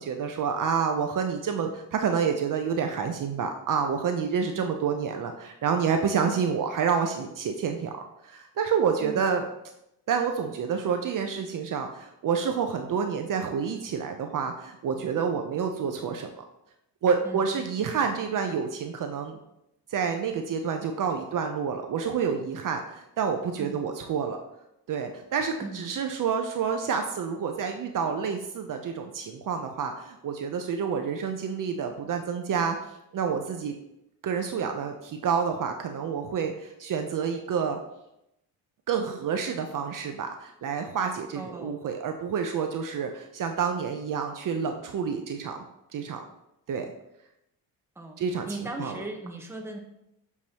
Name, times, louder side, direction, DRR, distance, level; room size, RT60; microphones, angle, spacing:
voice 1, 0.0-9.4 10.1-16.4 17.0-19.4 19.9-24.4 24.9-32.8 33.1-33.7 34.2-37.8 38.9-45.6 45.9-46.2 46.7-46.9 48.2-48.5 48.8-49.0, right 6 dB, 50° right, 5 dB, 0.7 m, -28 dB
voice 2, 25.6-25.9 41.3-41.8 48.0-48.2 48.4-49.8, right 2 dB, 5° right, 1 dB, 1.0 m, -38 dB
7.2 x 4.7 x 2.9 m, 0.83 s
cardioid pair, 90°, 40 cm